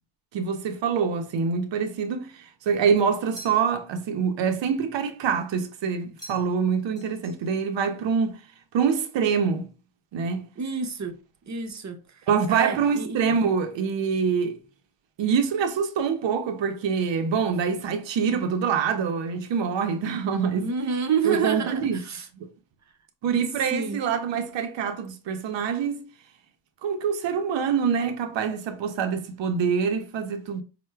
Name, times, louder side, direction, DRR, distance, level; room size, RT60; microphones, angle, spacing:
voice 1, 0.3-8.4 8.7-9.7 10.1-10.5 12.3-14.6 15.2-20.7 21.2-22.0 22.4-22.5 23.2-26.0 26.8-30.6, right 6 dB, 80° right, 0.5 m, -25 dB
sound 1, 3.3-4.0 6.2-6.7 7.0-7.7, equal, 10° left, 1.2 m, -46 dB
voice 2, 10.6-11.2 11.5-13.4 20.5-22.3 23.7-24.0, right 6 dB, 40° right, 0.6 m, -29 dB
4.3 x 2.0 x 2.2 m
cardioid pair, 65°, 44 cm